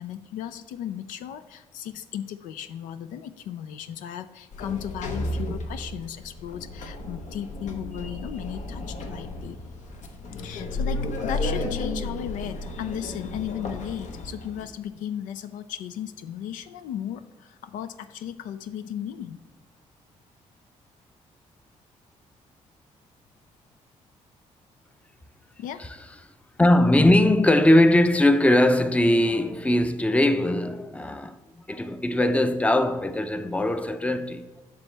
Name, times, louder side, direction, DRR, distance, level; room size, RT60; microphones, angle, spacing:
voice 1, 0.0-9.6 10.4-19.4 25.6-25.8, left 10 dB, 90° left, 0.4 m, -35 dB
Sliding door, 4.5-14.7, left 2 dB, 65° left, 1.0 m, -33 dB
voice 2, 26.6-34.5, left 1 dB, 10° left, 0.5 m, -20 dB
7.3 x 6.2 x 3.3 m
cardioid pair, 70°, 13 cm